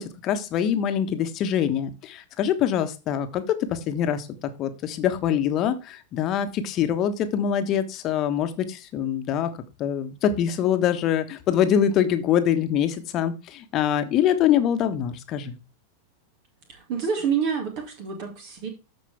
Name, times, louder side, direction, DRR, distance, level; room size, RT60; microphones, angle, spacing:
voice 1, 0.0-9.5 9.8-15.5, left 9 dB, 35° left, 9 dB, 1.3 m, -24 dB
voice 2, 16.7-18.7, right 6 dB, 45° right, 4 dB, 2.3 m, -28 dB
13.5 x 5.3 x 3.5 m, 0.29 s
figure-of-eight pair, 90°, 0 cm